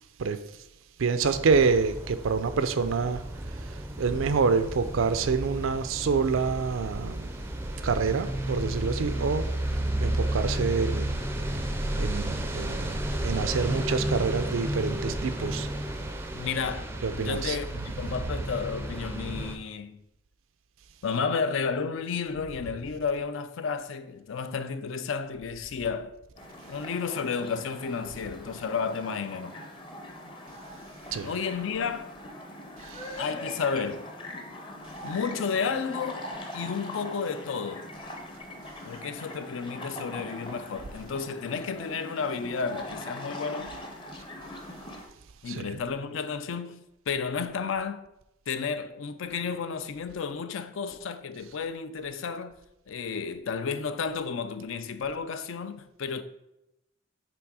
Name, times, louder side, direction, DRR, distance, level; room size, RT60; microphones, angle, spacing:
voice 1, 1.0-3.2 3.6-7.3 7.8-11.2 12.0-15.7 17.0-17.6 31.1-31.3 32.8-33.2 45.5-45.7, right 5 dB, 75° right, 0.4 m, -27 dB
sound 1, 1.2-19.6, right 1 dB, 10° right, 0.4 m, -32 dB
voice 2, 16.3-20.0 21.0-26.1 26.7-29.6 31.2-32.1 33.2-34.1 35.0-36.3 36.5-37.9 38.9-43.7 45.4-48.0 48.5-52.5 52.9-56.2, left 5 dB, 70° left, 0.4 m, -32 dB
sound 2, 26.4-45.1, left 1 dB, 25° left, 0.7 m, -42 dB
6.1 x 3.5 x 4.7 m
head